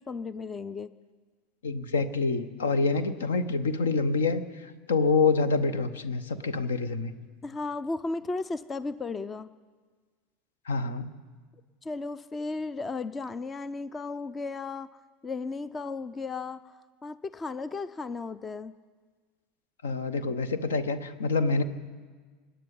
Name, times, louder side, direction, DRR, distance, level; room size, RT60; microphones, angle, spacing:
voice 1, 0.1-0.9 7.4-9.5 11.8-14.9 15.2-16.6 17.0-18.7, left 3 dB, 20° left, 16 dB, 0.5 m, -34 dB
voice 2, 1.6-4.4 4.9-7.1 10.7-11.1 19.8-21.6, left 4 dB, 70° left, 14 dB, 0.9 m, -26 dB
26.0 x 10.5 x 5.4 m, 1.5 s
figure-of-eight pair, 75°, 0 cm